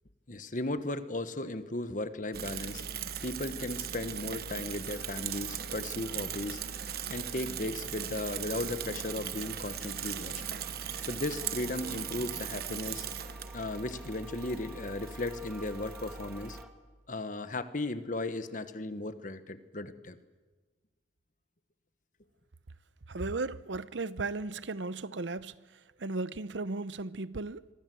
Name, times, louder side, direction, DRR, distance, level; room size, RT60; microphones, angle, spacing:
voice 1, 0.3-2.8 3.2-6.6 7.1-10.4 11.0-13.1 13.5-16.6 17.1-20.2, left 2 dB, 45° left, 1.4 m, -36 dB
Bicycle / Mechanisms, 2.3-16.6, right 8 dB, 55° right, 1.1 m, -39 dB
sound 1, 4.9-16.7, equal, 5° right, 2.1 m, -53 dB
voice 2, 23.1-27.7, right 3 dB, 85° right, 0.8 m, -36 dB
27.0 x 23.5 x 7.8 m
head